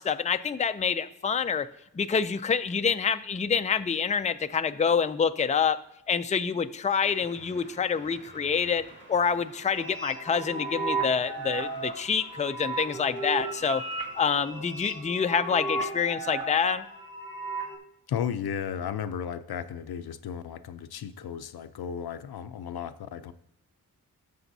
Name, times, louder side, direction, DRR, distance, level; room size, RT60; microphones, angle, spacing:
voice 1, 0.0-1.7 1.9-5.8 6.1-8.8 9.1-13.8 14.2-16.8, left 6 dB, 20° left, 10 dB, 0.4 m, -27 dB
sound 1, 7.0-16.7, right 1 dB, 30° right, 2.3 m, -54 dB
sound 2, 9.7-17.8, right 3 dB, 70° right, 2.2 m, -35 dB
voice 2, 18.1-23.3, left 8 dB, 85° left, 12 dB, 0.6 m, -34 dB
17.5 x 7.0 x 2.7 m, 0.79 s
wide cardioid pair, 95°, 37 cm